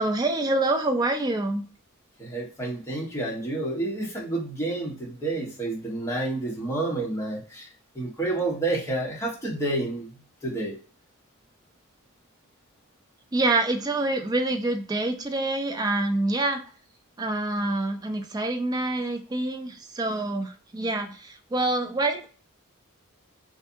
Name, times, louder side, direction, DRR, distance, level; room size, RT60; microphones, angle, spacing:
voice 1, 0.0-1.6 13.3-16.6 17.2-22.3, right 2 dB, 20° right, 5 dB, 0.3 m, -26 dB
voice 2, 2.2-7.7 7.9-10.1 10.4-10.7, right 2 dB, 15° left, -4 dB, 1.0 m, -29 dB
2.6 x 2.5 x 2.4 m, 0.39 s
head